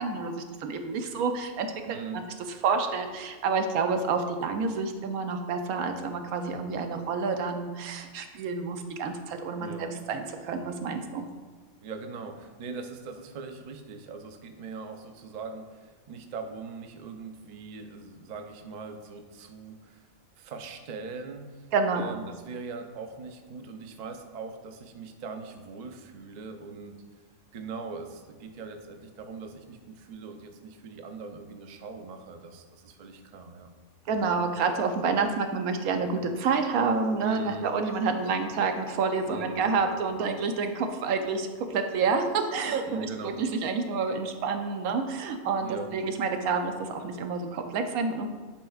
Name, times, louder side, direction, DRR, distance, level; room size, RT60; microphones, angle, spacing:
voice 1, 0.0-1.7 2.1-2.2 2.6-11.3 21.7-22.2 34.1-48.3, right 4 dB, 85° right, 6 dB, 1.1 m, -28 dB
voice 2, 1.8-2.2 9.6-9.9 11.8-20.0 20.4-21.7 21.9-27.0 27.5-33.7 34.1-34.2 37.2-37.7 39.3-39.7 42.9-43.4 45.6-46.0, right 4 dB, 70° right, 6 dB, 0.4 m, -41 dB
10.0 x 4.4 x 2.3 m, 1.4 s
omnidirectional pair, 1.5 m